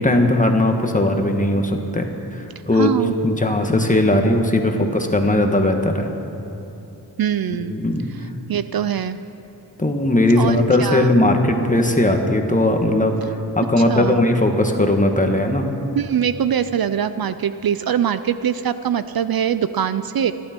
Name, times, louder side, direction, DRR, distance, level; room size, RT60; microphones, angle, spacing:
voice 1, 0.0-2.9 3.2-6.1 7.6-8.1 9.8-15.6, left 1 dB, 20° left, 4 dB, 1.4 m, -18 dB
voice 2, 2.7-3.1 7.2-7.7 8.5-9.2 10.3-11.1 13.8-14.2 15.9-20.3, right 8 dB, 60° right, 12 dB, 0.5 m, -22 dB
27.0 x 12.0 x 4.5 m, 2.9 s
wide cardioid pair, 110°, 40 cm